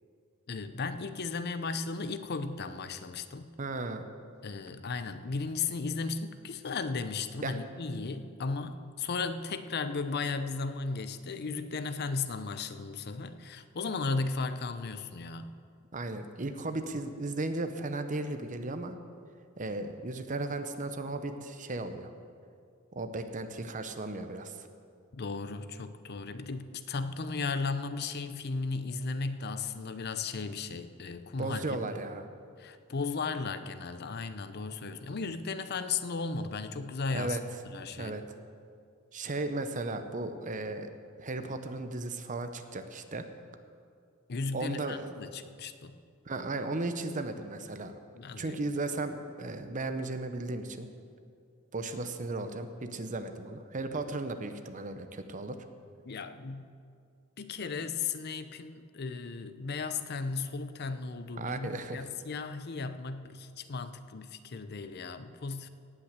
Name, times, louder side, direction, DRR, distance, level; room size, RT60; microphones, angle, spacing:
voice 1, 0.5-3.5 4.4-15.5 25.1-31.8 32.6-37.4 37.7-38.1 44.3-46.0 48.1-48.6 56.0-56.7 57.4-65.7, left 4 dB, 50° left, 11 dB, 0.6 m, -35 dB
voice 2, 3.6-4.0 7.4-7.6 15.9-19.0 19.6-22.1 22.9-24.7 31.4-32.3 37.1-37.4 38.0-38.2 39.1-40.9 41.2-43.3 44.5-45.1 46.3-48.0 48.4-50.9 51.7-55.6 61.4-62.0, right 2 dB, 40° right, 8 dB, 0.8 m, -35 dB
18.0 x 6.0 x 8.1 m, 2.3 s
head